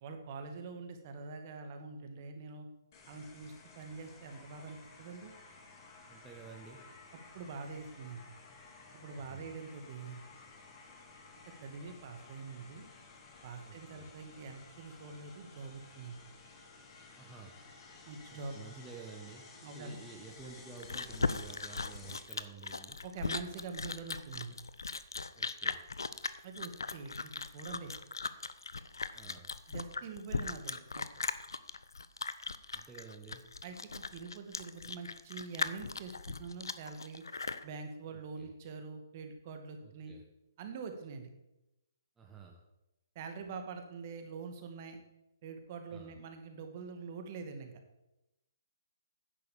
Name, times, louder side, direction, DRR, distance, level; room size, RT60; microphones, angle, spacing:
voice 1, 0.0-2.7 3.1-5.3 7.3-8.2 8.9-10.2 11.6-12.9 13.4-16.2 18.1-18.6 19.6-20.0 23.0-24.6 26.4-27.9 29.7-31.0 33.6-37.2 37.6-40.1 40.6-41.3 43.2-45.0 45.4-47.7, right 4 dB, 40° right, 5 dB, 1.9 m, -45 dB
sound 1, 2.9-22.2, left 4 dB, 40° left, 3.1 m, -55 dB
voice 2, 6.1-6.8 9.1-9.5 13.6-14.1 17.1-17.6 18.3-23.0 25.3-25.8 29.1-29.5 32.7-33.5 38.4-38.5 39.8-40.2 42.2-42.6 45.9-46.1, right 5 dB, 10° right, 0 dB, 1.2 m, -51 dB
Chewing mastication, 20.4-37.6, left 4 dB, 85° left, 0.7 m, -38 dB
10.0 x 6.8 x 7.2 m, 0.92 s
hypercardioid pair, 145°, 2 cm